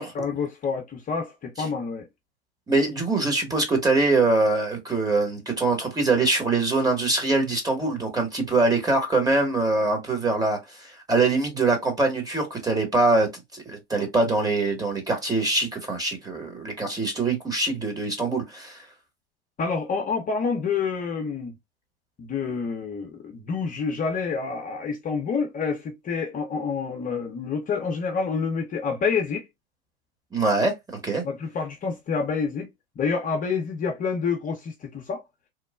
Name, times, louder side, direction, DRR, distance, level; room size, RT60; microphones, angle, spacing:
voice 1, 0.1-2.1 19.6-21.5 22.2-29.4 31.2-32.7 33.0-35.2, left 5 dB, 30° left, 0.8 m, -28 dB
voice 2, 2.7-18.8 30.3-30.7 31.0-31.2, right 3 dB, 15° right, 1.3 m, -23 dB
3.1 x 2.2 x 2.4 m
hypercardioid pair, 90°, 30 cm